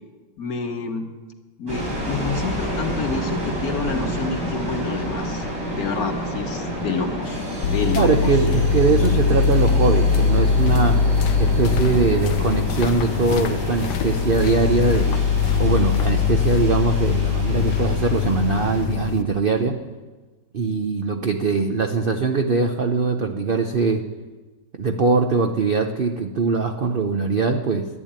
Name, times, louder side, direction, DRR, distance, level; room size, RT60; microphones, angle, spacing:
voice 1, 0.4-1.1 1.6-5.5 5.7-8.4, left 4 dB, 55° left, 5 dB, 1.6 m, -28 dB
sound 1, 1.7-18.8, equal, 80° right, 5.3 m, -30 dB
sound 2, 7.6-19.2, left 6 dB, 75° left, 1.2 m, -21 dB
voice 2, 7.9-11.0 11.4-15.2 15.6-19.8 20.5-24.0 24.8-27.8, right 4 dB, 55° right, 5 dB, 0.6 m, -21 dB
11.0 x 10.5 x 8.8 m, 1.3 s
omnidirectional pair, 1.9 m